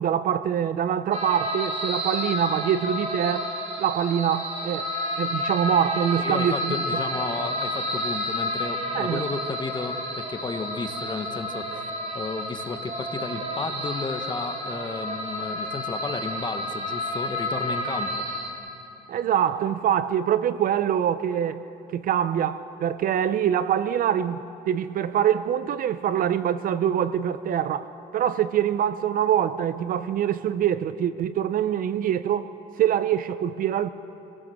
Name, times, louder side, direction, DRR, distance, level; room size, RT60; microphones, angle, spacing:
voice 1, 0.0-3.5 3.8-4.9 5.2-6.8 8.9-9.2 19.1-21.6 21.9-24.4 24.7-32.5 32.8-33.9, right 9 dB, 55° right, 0.7 m, -24 dB
sound 1, 1.1-18.5, left 1 dB, 35° right, 3.1 m, -30 dB
voice 2, 6.2-18.3, left 4 dB, 25° left, 1.5 m, -33 dB
27.0 x 18.0 x 6.5 m
cardioid pair, 110°, 17 cm